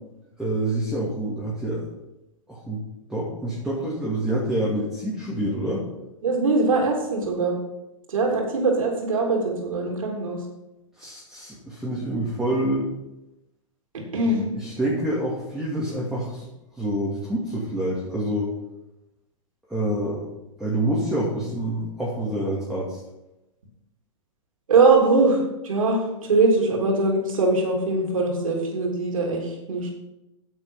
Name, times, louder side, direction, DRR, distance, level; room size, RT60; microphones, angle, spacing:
voice 1, 0.4-1.8 2.5-2.8 3.1-5.8 11.0-12.9 14.6-16.5 16.8-18.5 19.7-20.3 20.6-23.0, right 1 dB, ahead, -7 dB, 2.5 m, -27 dB
voice 2, 6.2-7.6 8.1-10.4 13.9-14.4 24.7-29.9, right 3 dB, 85° right, 0 dB, 3.0 m, -22 dB
9.8 x 7.7 x 5.6 m, 0.95 s
hypercardioid pair, 130°, 17 cm